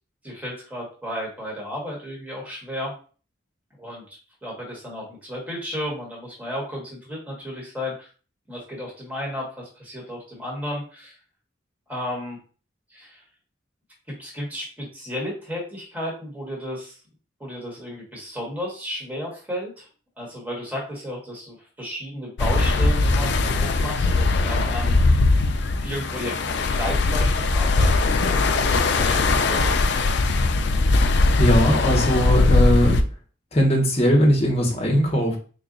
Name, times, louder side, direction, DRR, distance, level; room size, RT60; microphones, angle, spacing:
voice 1, 0.2-2.9 3.8-8.1 8.5-11.1 11.9-12.4 12.9-13.2 14.1-16.9 17.4-19.9 20.2-25.0 25.8-29.8, equal, 10° right, -3 dB, 1.3 m, -33 dB
sound 1, 22.4-33.0, left 3 dB, 60° left, 0.4 m, -20 dB
voice 2, 31.4-33.0 33.5-35.4, equal, 30° left, 0 dB, 1.0 m, -19 dB
3.9 x 2.3 x 3.9 m, 0.38 s
head